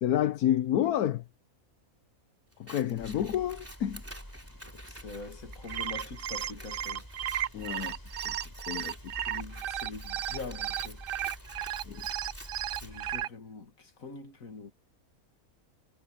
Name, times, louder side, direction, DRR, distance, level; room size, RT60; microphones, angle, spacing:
voice 1, 0.0-1.2 2.6-4.0 7.5-8.3 8.6-8.9 11.9-12.0, left 11 dB, 85° left, 1.3 m, -29 dB
Scissors, 2.5-12.9, right 1 dB, 10° right, 3.3 m, -51 dB
sound 1, 3.0-13.3, equal, 15° left, 6.6 m, -47 dB
voice 2, 4.7-7.0 9.0-11.0 12.7-14.7, left 4 dB, 65° left, 2.7 m, -44 dB
sound 2, 5.5-13.3, right 11 dB, 85° right, 0.5 m, -34 dB
omnidirectional pair, 1.5 m